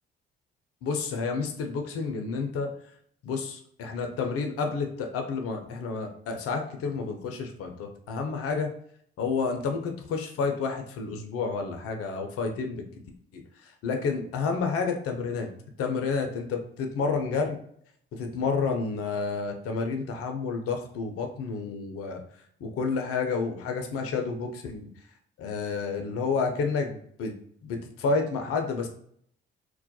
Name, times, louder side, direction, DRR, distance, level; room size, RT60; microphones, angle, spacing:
voice 1, 0.8-2.7 3.2-8.7 9.2-12.8 13.8-15.5 15.8-17.6 18.1-22.2 22.6-24.9 25.4-27.3 27.6-28.9, left 4 dB, 50° left, 4 dB, 0.5 m, -30 dB
2.3 x 2.1 x 2.7 m, 0.65 s
hypercardioid pair, 45°, 29 cm